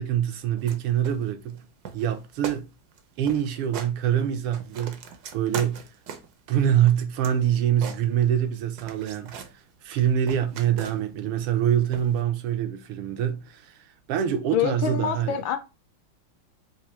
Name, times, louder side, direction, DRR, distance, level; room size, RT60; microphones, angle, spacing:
voice 1, 0.0-1.6 1.9-2.6 3.2-5.0 5.3-5.8 6.5-9.4 9.8-15.4, right 10 dB, 85° right, 1.6 m, -25 dB
sound 1, 0.6-0.8 1.0-1.6 1.9-2.2 2.4-2.6 2.9-3.0 3.3-3.9 4.3-6.4 6.8-8.5 8.8-9.6 10.0-11.2 11.9-12.2, right 7 dB, 70° right, 1.0 m, -39 dB
voice 2, 14.5-15.6, left 9 dB, 75° left, 1.3 m, -25 dB
4.7 x 2.6 x 4.2 m
omnidirectional pair, 2.4 m